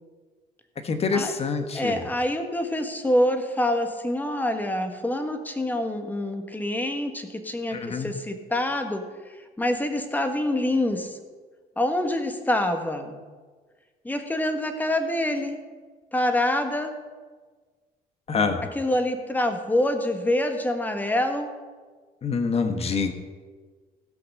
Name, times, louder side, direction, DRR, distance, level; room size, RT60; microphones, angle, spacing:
voice 1, 0.8-2.0 7.7-8.1 18.3-18.6 22.2-23.1, left 5 dB, 35° left, 7 dB, 1.4 m, -26 dB
voice 2, 1.7-9.0 9.6-11.2 11.8-13.2 14.0-15.6 16.1-16.9 18.7-21.5, left 1 dB, 10° left, 6 dB, 1.4 m, -26 dB
16.5 x 5.8 x 6.6 m, 1.5 s
cardioid pair, 110°, 17 cm